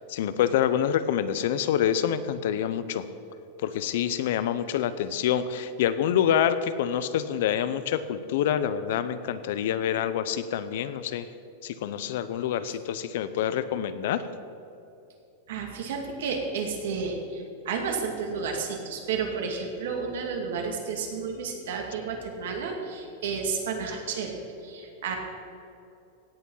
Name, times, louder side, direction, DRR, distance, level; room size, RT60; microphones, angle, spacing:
voice 1, 0.1-3.1 3.6-11.3 11.6-14.3, left 9 dB, 55° left, 13 dB, 0.7 m, -26 dB
voice 2, 15.5-24.3 24.6-25.2, right 5 dB, 70° right, 1 dB, 2.3 m, -31 dB
16.5 x 8.9 x 5.6 m, 2.7 s
supercardioid pair, 175°, 0 cm